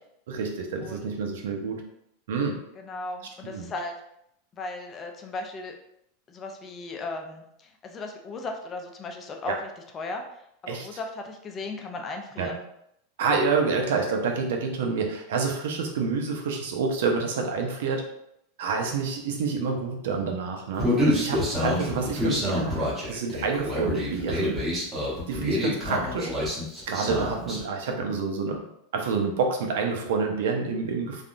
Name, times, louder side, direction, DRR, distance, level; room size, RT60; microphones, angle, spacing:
voice 1, 0.3-1.8 2.3-2.6 3.4-3.7 9.5-9.6 10.7-10.9 12.4-12.5 13.2-18.0 18.6-24.6 25.3-26.3 26.9-28.6 28.9-31.2, right 4 dB, 80° right, 3 dB, 0.6 m, -28 dB
voice 2, 2.8-4.0 4.5-5.7 6.3-10.2 10.6-12.6 25.9-26.4, left 2 dB, 25° left, 3 dB, 0.4 m, -36 dB
Human voice, 20.8-27.6, left 1 dB, 15° right, 1.0 m, -27 dB
3.4 x 2.3 x 2.5 m, 0.76 s
supercardioid pair, 150°, 0 cm